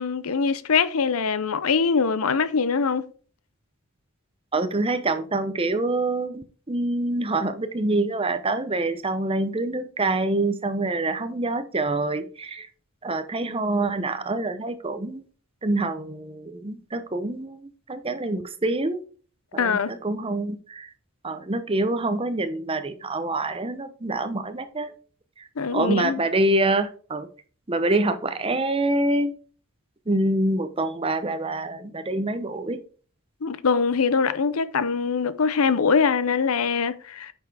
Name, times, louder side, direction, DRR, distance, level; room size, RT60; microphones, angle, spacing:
voice 1, 0.0-3.1 19.6-19.9 25.6-26.2 33.4-37.3, left 5 dB, 80° left, 0.7 m, -23 dB
voice 2, 4.5-12.7 13.0-15.2 15.6-19.0 19.5-20.9 21.2-24.9 25.4-27.3 27.7-29.3 30.1-32.8, right 2 dB, 25° right, 0.7 m, -26 dB
9.0 x 6.0 x 3.4 m
head